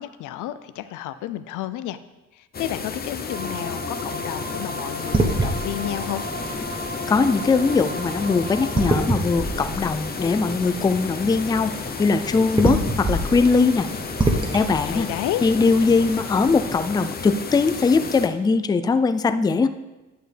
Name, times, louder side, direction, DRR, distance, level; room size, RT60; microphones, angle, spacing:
voice 1, 0.0-2.0 2.3-6.2 14.8-15.4, left 13 dB, 80° left, 12 dB, 0.5 m, -31 dB
sound 1, 2.5-18.3, left 5 dB, 30° left, 0.7 m, -33 dB
sound 2, 3.3-9.1, equal, 35° right, 1.6 m, -35 dB
sound 3, 5.0-16.8, right 2 dB, 15° right, 1.0 m, -28 dB
voice 2, 7.1-11.7 12.0-13.9 14.5-15.1 15.4-19.7, left 4 dB, 15° left, 10 dB, 0.3 m, -20 dB
10.0 x 6.6 x 3.4 m, 1.1 s
cardioid pair, 90°, 30 cm